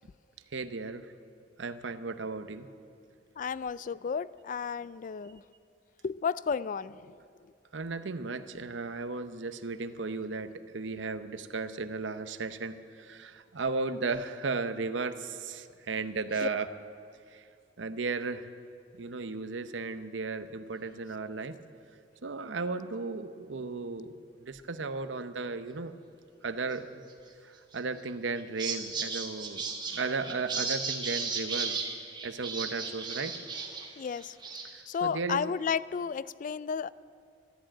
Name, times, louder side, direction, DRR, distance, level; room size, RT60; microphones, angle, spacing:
voice 1, 0.5-1.1 1.6-2.7 7.7-16.7 17.3-17.4 17.8-18.5 18.9-21.6 22.2-24.1 24.5-25.9 26.4-26.9 27.4-29.6 29.9-31.8 32.2-33.4 34.7-35.5, right 4 dB, 85° right, 11 dB, 0.8 m, -35 dB
voice 2, 3.4-5.4 6.0-7.2 16.4-16.5 34.0-34.4 34.9-36.9, left 6 dB, 45° left, 19 dB, 0.3 m, -33 dB
Great Shearwater (Puffinus gravis) seabird calls, 27.7-28.0 28.4-33.9 34.2-34.8, right 4 dB, 25° right, 1.7 m, -35 dB
13.5 x 11.5 x 8.8 m, 2.4 s
head